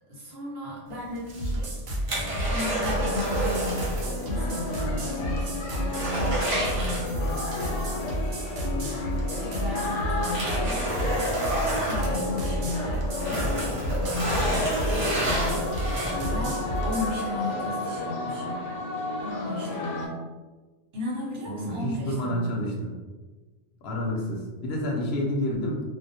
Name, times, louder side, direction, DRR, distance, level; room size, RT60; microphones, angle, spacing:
voice 1, 0.1-1.7 2.1-7.8 8.8-18.6 19.2-20.1 20.9-22.5, left 2 dB, 60° right, -5 dB, 0.9 m, -35 dB
sound 1, 1.2-4.1 4.4-4.5 5.0-5.1 5.4-7.5 8.9-9.0 9.6-12.8 13.1-16.4 17.0-17.1, right 1 dB, 45° right, 0.5 m, -30 dB
sound 2, 1.3-17.1, right 1 dB, 85° right, 1.0 m, -31 dB
sound 3, 2.9-20.1, left 2 dB, 85° left, 0.9 m, -32 dB
voice 2, 21.5-22.9 23.8-25.8, left 1 dB, 65° left, -2 dB, 0.8 m, -29 dB
2.4 x 2.1 x 2.7 m, 1.3 s
omnidirectional pair, 1.2 m